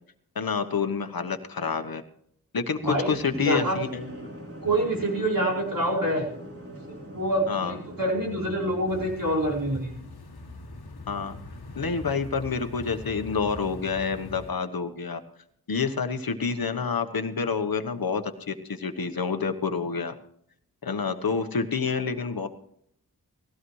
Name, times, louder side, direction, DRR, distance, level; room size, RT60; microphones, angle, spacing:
voice 1, 0.3-2.0 2.5-4.1 7.5-7.8 11.1-11.4 11.7-15.2 15.7-20.2 20.8-22.5, left 5 dB, 70° left, 8 dB, 1.1 m, -28 dB
voice 2, 2.8-3.1 3.4-3.8 4.6-6.3 7.1-10.0, right 1 dB, 65° right, -4 dB, 4.8 m, -26 dB
sound 1, 3.0-9.1, right 1 dB, 40° right, 3.4 m, -42 dB
sound 2, 8.9-14.5, left 2 dB, 85° left, 1.5 m, -42 dB
18.5 x 15.5 x 3.2 m, 0.69 s
wide cardioid pair, 50°, 37 cm